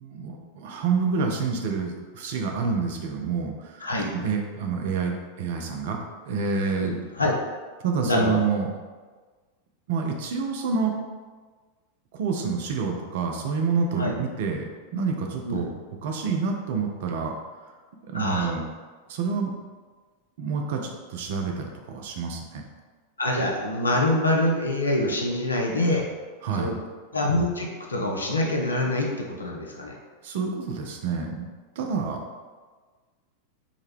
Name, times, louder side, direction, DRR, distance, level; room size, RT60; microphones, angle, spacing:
voice 1, 0.0-7.0 7.8-8.7 9.9-10.9 12.1-14.7 14.9-15.7 16.0-17.3 18.0-18.6 19.1-19.5 20.4-22.6 26.4-26.7 30.2-31.5 31.8-32.2, right 5 dB, 55° right, 2 dB, 0.4 m, -28 dB
voice 2, 3.8-4.1 6.8-7.3 8.0-8.4 14.0-14.1 15.5-15.7 18.1-18.5 23.2-26.1 26.6-26.8 27.1-30.0, left 1 dB, 75° left, -1 dB, 0.5 m, -25 dB
3.7 x 2.1 x 3.1 m, 1.4 s
figure-of-eight pair, 90°, 0 cm